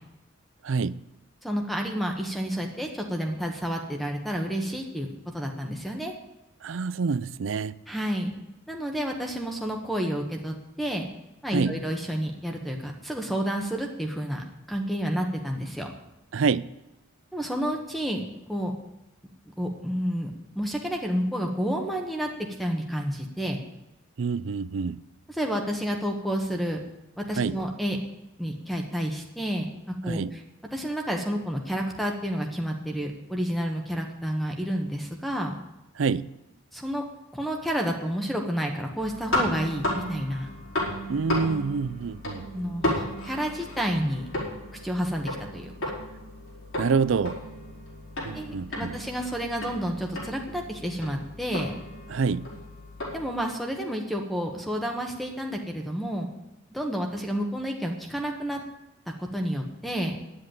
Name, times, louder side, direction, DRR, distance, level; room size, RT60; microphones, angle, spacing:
voice 1, 0.6-1.0 6.6-7.8 11.5-11.8 16.3-16.7 24.2-25.0 27.4-27.6 30.0-30.4 36.0-36.3 41.1-42.5 46.8-47.4 48.2-48.9 52.1-52.5, right 5 dB, 65° right, 0.4 m, -27 dB
voice 2, 1.4-6.1 7.9-8.3 8.7-11.0 11.4-15.9 17.3-18.2 18.5-18.7 19.6-20.3 20.5-22.3 22.6-23.6 25.3-26.8 27.2-28.0 28.4-30.4 30.7-35.6 36.7-37.0 37.3-40.5 42.5-44.3 44.7-45.9 48.3-51.7 53.1-56.3 56.7-58.6 59.2-60.2, equal, ahead, 1.2 m, -30 dB
sound 1, 39.0-53.3, left 1 dB, 70° left, 4.7 m, -34 dB
10.5 x 8.0 x 9.2 m
head